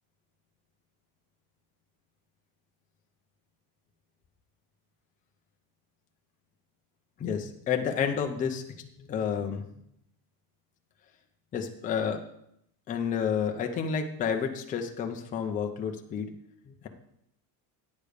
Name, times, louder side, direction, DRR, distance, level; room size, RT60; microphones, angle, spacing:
voice 1, 7.2-8.6 9.0-9.7 11.5-12.2 12.9-16.3 16.7-16.9, left 7 dB, 20° left, 4 dB, 0.5 m, -30 dB
9.3 x 6.6 x 5.0 m, 0.76 s
cardioid pair, 175°, 48 cm